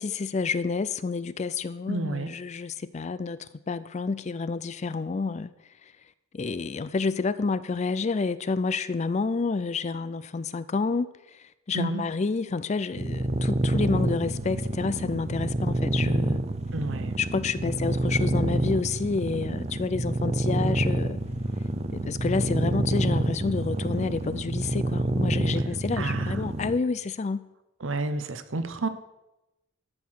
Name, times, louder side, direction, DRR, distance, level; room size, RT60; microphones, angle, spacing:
voice 1, 0.0-5.5 6.3-11.1 11.3-16.4 17.2-21.2 21.9-27.5, left 4 dB, 35° left, 0.4 m, -29 dB
voice 2, 1.9-2.3 11.7-12.0 16.7-17.2 26.0-26.4 27.8-28.9, right 2 dB, 70° right, 0.9 m, -30 dB
sound 1, 13.0-26.8, right 1 dB, 30° right, 0.6 m, -27 dB
12.5 x 5.8 x 6.3 m
head